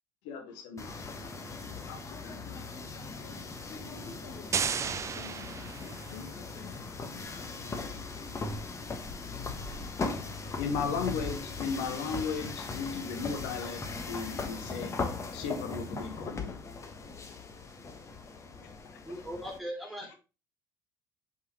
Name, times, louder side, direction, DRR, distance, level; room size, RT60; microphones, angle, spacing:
voice 1, 0.2-1.0 1.8-2.6 10.6-15.0 15.3-16.6, left 5 dB, 60° left, 1.1 m, -36 dB
sound 1, 0.8-19.6, left 4 dB, 25° left, 1.3 m, -39 dB
sound 2, 4.5-6.3, right 6 dB, 25° right, 0.5 m, -33 dB
voice 2, 4.8-5.7 6.1-6.3 6.6-6.8 7.1-7.3 7.6-7.8 18.6-19.2 19.8-20.0, left 11 dB, 75° left, 0.4 m, -51 dB
voice 3, 19.0-20.2, equal, ahead, 2.4 m, -39 dB
8.0 x 5.0 x 3.1 m
figure-of-eight pair, 55°, 11 cm